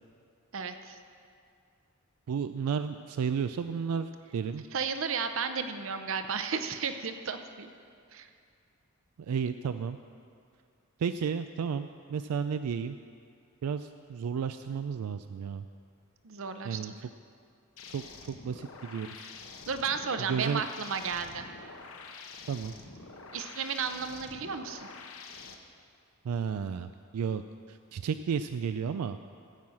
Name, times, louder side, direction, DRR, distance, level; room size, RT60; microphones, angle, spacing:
voice 1, 0.5-1.0 4.7-7.7 8.1-8.3 16.2-17.0 19.7-21.5 23.3-24.9, right 5 dB, 60° right, 8 dB, 0.7 m, -33 dB
voice 2, 2.3-4.6 9.3-10.0 11.0-13.0 13.6-15.6 16.6-16.9 17.9-19.3 20.3-20.6 22.5-22.7 26.2-27.4 27.7-29.2, right 6 dB, 85° right, 10 dB, 0.4 m, -32 dB
sound 1, 17.8-25.6, left 4 dB, 65° left, 1.0 m, -47 dB
15.5 x 5.6 x 7.6 m, 2.4 s
head